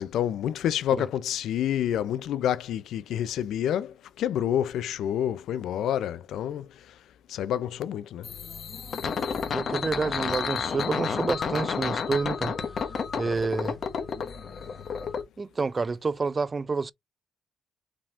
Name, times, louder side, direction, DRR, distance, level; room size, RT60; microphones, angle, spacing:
voice 1, 0.0-6.7 7.3-8.3, left 10 dB, 80° left, 0.4 m, -28 dB
sound 1, 8.2-15.2, left 6 dB, 55° left, 1.0 m, -31 dB
voice 2, 9.5-12.5 13.1-13.8 15.4-16.9, right 4 dB, 30° right, 0.4 m, -28 dB
5.0 x 3.4 x 2.5 m
cardioid pair, 90°, 0 cm